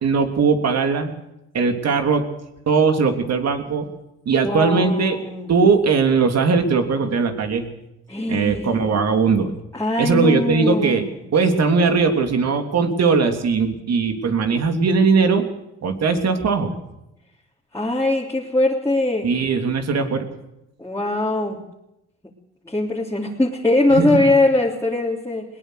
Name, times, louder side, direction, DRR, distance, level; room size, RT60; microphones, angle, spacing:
voice 1, 0.0-1.1 1.5-2.2 2.7-3.9 4.2-5.2 5.5-7.7 8.3-9.5 10.0-11.1 11.3-15.5 15.8-16.8 19.2-20.3 23.9-24.1, right 5 dB, 60° right, 6 dB, 3.3 m, -19 dB
voice 2, 4.4-5.5 8.1-8.8 9.7-11.1 17.7-19.3 20.8-21.6 22.6-25.6, left 2 dB, 10° left, -4 dB, 3.3 m, -21 dB
21.0 x 19.0 x 6.6 m, 0.89 s
cardioid pair, 90°, 30 cm